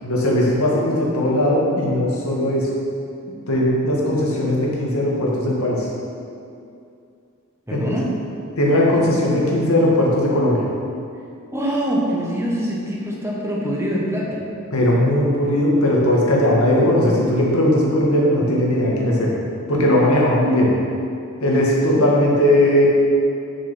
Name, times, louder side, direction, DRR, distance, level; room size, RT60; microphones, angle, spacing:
voice 1, 0.0-2.7 3.5-5.9 7.7-7.8 8.6-10.6 14.7-19.3 19.7-20.7 21.4-22.9, left 1 dB, 80° left, -4 dB, 1.9 m, -18 dB
voice 2, 7.7-8.1 11.5-14.4, equal, 10° right, -4 dB, 1.4 m, -24 dB
6.7 x 6.6 x 6.2 m, 2.5 s
head